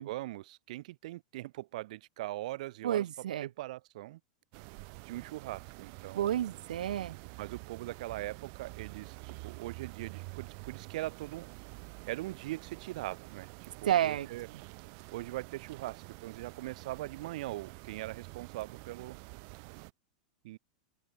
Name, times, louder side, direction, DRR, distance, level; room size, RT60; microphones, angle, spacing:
voice 1, 0.0-3.0 3.4-4.2 5.0-6.4 7.4-11.5 12.1-14.5 15.1-19.2 20.4-20.6, right 17 dB, 65° right, 0.9 m, -41 dB
voice 2, 2.8-3.5 6.1-7.2 13.8-14.3, right 11 dB, 90° right, 0.9 m, -30 dB
sound 1, 4.5-19.9, right 40 dB or more, 50° right, 6.5 m, -48 dB
supercardioid pair, 145°, 4 cm